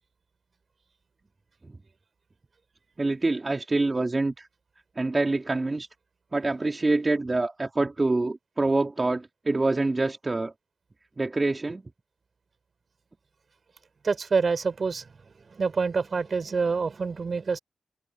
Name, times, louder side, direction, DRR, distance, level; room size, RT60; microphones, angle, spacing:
voice 1, 3.0-4.5 5.0-5.9 6.3-10.5 11.2-11.8, right 2 dB, 30° right, 3.1 m, -26 dB
voice 2, 14.0-17.6, right 4 dB, 50° right, 6.7 m, -27 dB
cardioid pair, 75°, 0 cm